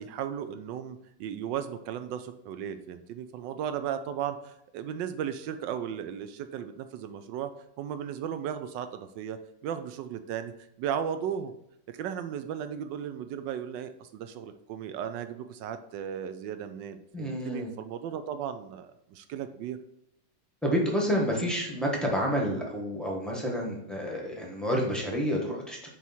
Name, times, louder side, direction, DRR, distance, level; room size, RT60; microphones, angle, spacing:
voice 1, 0.0-11.5 11.9-19.8, right 9 dB, 75° right, 10 dB, 1.1 m, -36 dB
voice 2, 17.1-17.7 20.6-25.9, equal, ahead, -2 dB, 0.9 m, -29 dB
8.3 x 3.1 x 4.2 m, 0.79 s
omnidirectional pair, 2.2 m